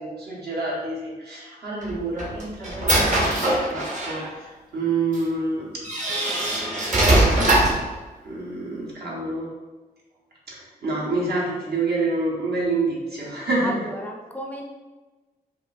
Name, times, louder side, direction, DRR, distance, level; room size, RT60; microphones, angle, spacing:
voice 1, 0.0-5.7 8.2-9.5 10.5-10.6 10.8-13.8, right 3 dB, 70° right, -5 dB, 1.2 m, -27 dB
sound 1, 1.8-4.3 5.1-5.2 5.8-7.9, right 1 dB, 45° right, 0.9 m, -21 dB
voice 2, 13.6-14.6, equal, 10° left, 0 dB, 0.4 m, -33 dB
4.7 x 2.5 x 2.5 m, 1.2 s
wide cardioid pair, 115°, 17 cm